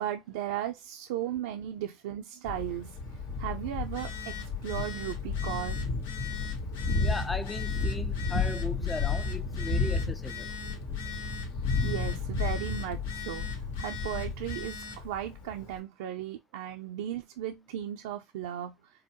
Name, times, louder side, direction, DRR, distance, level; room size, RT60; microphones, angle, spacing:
voice 1, 0.0-3.0 3.4-5.9 11.8-19.0, right 11 dB, 85° right, 0.5 m, -36 dB
Thunder, 2.4-15.8, left 4 dB, 70° left, 1.5 m, -32 dB
Telephone, 3.8-15.1, left 6 dB, 90° left, 1.0 m, -43 dB
voice 2, 7.0-10.5, left 2 dB, 15° left, 0.5 m, -37 dB
4.6 x 2.1 x 3.0 m
supercardioid pair, 115°, 0 cm